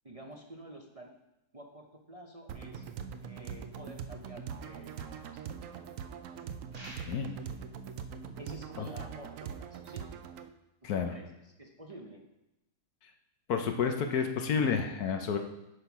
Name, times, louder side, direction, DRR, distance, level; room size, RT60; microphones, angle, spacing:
voice 1, 0.0-1.1 1.5-2.9 3.2-5.2 8.4-10.1 10.8-12.3, right 1 dB, 30° right, 1 dB, 0.7 m, -49 dB
sound 1, 2.5-10.5, right 7 dB, 65° right, 0.9 m, -42 dB
sound 2, 6.7-7.5, right 1 dB, 90° right, 3.5 m, -48 dB
voice 2, 13.5-15.4, left 6 dB, 70° left, 5 dB, 1.3 m, -30 dB
9.6 x 5.8 x 4.7 m, 0.90 s
omnidirectional pair, 1.7 m